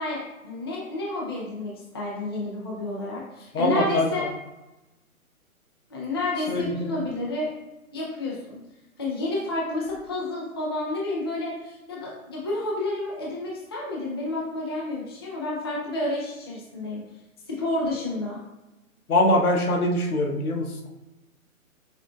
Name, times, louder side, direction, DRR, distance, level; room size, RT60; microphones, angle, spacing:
voice 1, 0.0-4.3 5.9-7.5 7.9-8.6 9.0-17.0 17.5-18.4, left 2 dB, 20° left, -5 dB, 0.4 m, -30 dB
voice 2, 3.5-4.1 6.5-6.9 19.1-20.7, left 1 dB, 85° left, 0 dB, 1.2 m, -22 dB
6.0 x 3.4 x 2.4 m, 1.0 s
hypercardioid pair, 145°, 43 cm